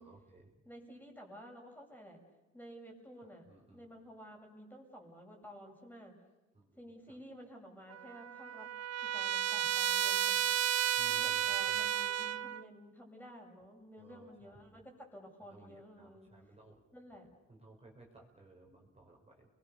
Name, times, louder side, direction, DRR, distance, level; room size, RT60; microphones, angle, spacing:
voice 1, 0.0-0.5 3.2-3.9 6.5-6.8 7.1-7.2 11.0-11.9 14.0-14.8 15.5-16.8 17.5-19.5, right 2 dB, 20° right, -1 dB, 5.8 m, -59 dB
voice 2, 0.6-2.2 2.5-3.4 3.7-6.2 6.8-8.7 9.0-10.5 11.1-16.3 16.9-17.3, equal, 5° left, 0 dB, 7.0 m, -52 dB
Trumpet, 7.9-12.6, right 11 dB, 60° right, 0.9 m, -33 dB
30.0 x 22.0 x 7.0 m, 1.1 s
cardioid pair, 90°, 30 cm